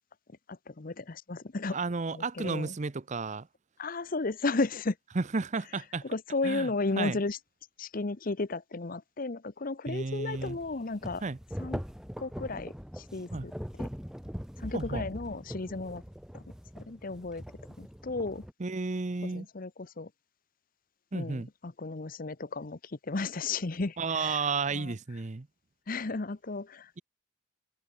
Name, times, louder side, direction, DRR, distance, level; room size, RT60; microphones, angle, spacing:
voice 1, 0.5-1.8 2.1-2.7 3.8-5.0 6.0-7.4 7.8-11.2 11.6-11.8 12.2-13.5 13.8-13.9 14.6-16.0 16.3-16.4 16.9-17.4 17.8-18.4 19.2-20.1 21.1-24.4 24.7-24.9 25.9-26.9, left 3 dB, 45° left, 0.8 m, -34 dB
voice 2, 1.7-3.5 5.1-6.0 6.4-7.2 9.9-10.6 11.2-11.4 13.3-13.5 14.7-15.1 18.6-19.5 21.1-21.5 24.0-25.5, right 4 dB, 35° right, 0.6 m, -32 dB
sound 1, 10.3-18.5, equal, 5° right, 1.0 m, -41 dB
head